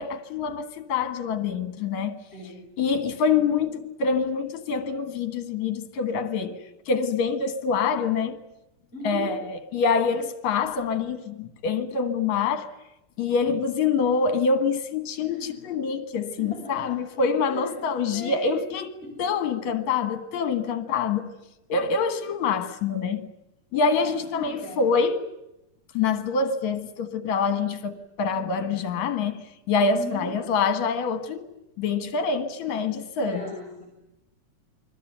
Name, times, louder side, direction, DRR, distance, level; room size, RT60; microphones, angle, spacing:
voice 1, 0.0-2.2 2.8-8.4 9.0-12.7 13.2-18.9 19.2-21.3 21.7-23.3 23.7-25.2 25.9-31.5 31.8-33.4, left 5 dB, 70° left, 3.0 m, -26 dB
voice 2, 2.3-2.7 8.9-9.4 15.2-15.6 16.4-17.0 17.4-17.7 18.1-18.6 19.0-19.2 24.0-24.9 29.9-30.3 33.2-33.9, left 2 dB, 20° left, 5.7 m, -37 dB
28.5 x 22.0 x 9.2 m
omnidirectional pair, 3.4 m